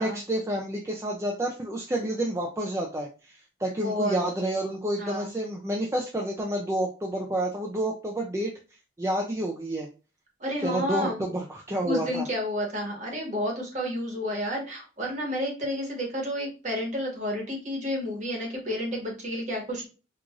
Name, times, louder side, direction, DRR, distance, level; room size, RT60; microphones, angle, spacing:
voice 1, 0.0-8.5 9.0-9.9 10.6-12.2, right 1 dB, 15° right, 0 dB, 0.4 m, -29 dB
voice 2, 3.8-4.2 5.0-5.3 10.4-11.4 11.8-19.8, equal, 40° right, 0 dB, 1.3 m, -31 dB
4.6 x 2.5 x 2.4 m, 0.33 s
head